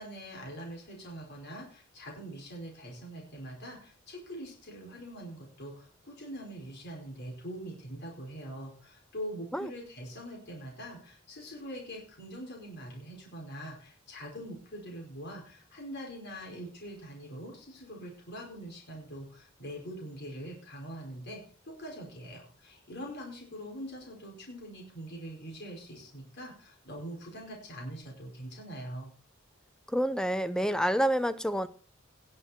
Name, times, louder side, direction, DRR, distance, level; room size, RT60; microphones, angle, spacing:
voice 1, 0.0-29.1, equal, 55° left, -1 dB, 5.0 m, -43 dB
voice 2, 29.9-31.7, equal, 5° left, 13 dB, 0.5 m, -28 dB
18.5 x 7.6 x 4.2 m, 0.41 s
head